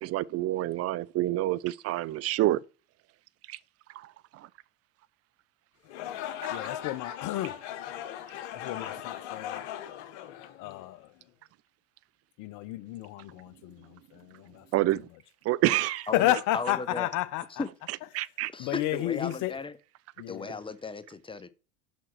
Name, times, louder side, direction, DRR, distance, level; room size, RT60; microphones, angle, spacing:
voice 1, 0.0-2.6 3.5-3.6 3.9-4.1 4.3-4.5 6.4-6.5 14.7-15.1 15.4-16.1 18.1-18.5, right 15 dB, 45° right, 0.5 m, -28 dB
sound 1, 5.8-11.1, left 11 dB, 75° left, 1.3 m, -38 dB
voice 2, 6.5-7.6 8.5-9.6 10.6-11.1 12.4-14.8 16.1-17.6 18.6-19.5 20.2-20.6, left 15 dB, 60° left, 0.9 m, -32 dB
voice 3, 16.1-17.1 17.5-17.7 18.5-19.8 20.3-21.5, left 3 dB, 15° left, 0.9 m, -36 dB
6.4 x 6.0 x 4.5 m
hypercardioid pair, 80°, 35 cm